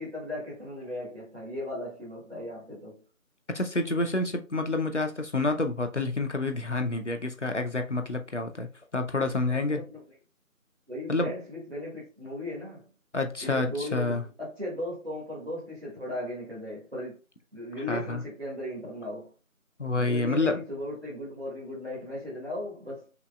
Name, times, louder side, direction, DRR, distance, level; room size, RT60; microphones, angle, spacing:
voice 1, 0.0-3.0 9.5-10.0 10.9-12.8 13.4-17.2 17.5-19.3 20.0-23.1, left 1 dB, 45° right, 1.4 m, -37 dB
voice 2, 3.5-9.8 11.1-11.3 13.1-14.2 17.9-18.2 19.8-20.6, left 2 dB, 55° left, 0.7 m, -28 dB
5.9 x 2.9 x 2.3 m
figure-of-eight pair, 180°, 42 cm